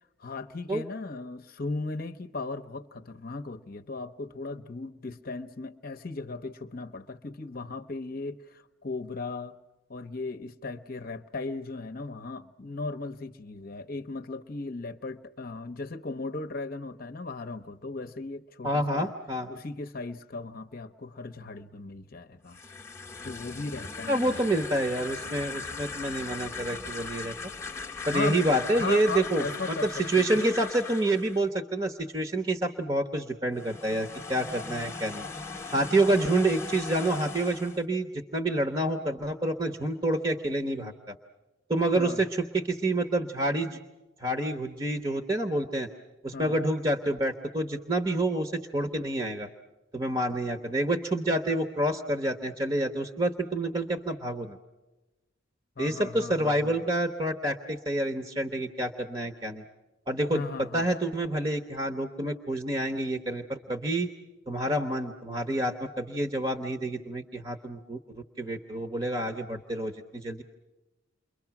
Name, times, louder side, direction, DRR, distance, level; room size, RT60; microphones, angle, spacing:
voice 1, 0.2-9.6 9.9-19.1 19.5-22.6 23.2-24.4 28.1-28.4 28.7-30.6 41.9-42.2 46.3-46.6 55.8-56.8 60.3-60.9, left 3 dB, 45° left, 0.8 m, -37 dB
voice 2, 18.6-19.5 24.1-27.5 28.1-35.2 35.7-41.1 41.7-43.8 44.2-45.9 46.2-49.5 49.9-54.6 55.8-59.6 60.1-64.1 64.5-70.4, right 1 dB, 25° right, 1.0 m, -28 dB
sound 1, 22.4-31.4 33.5-37.8, left 4 dB, 15° left, 0.9 m, -39 dB
29.5 x 23.0 x 5.9 m
head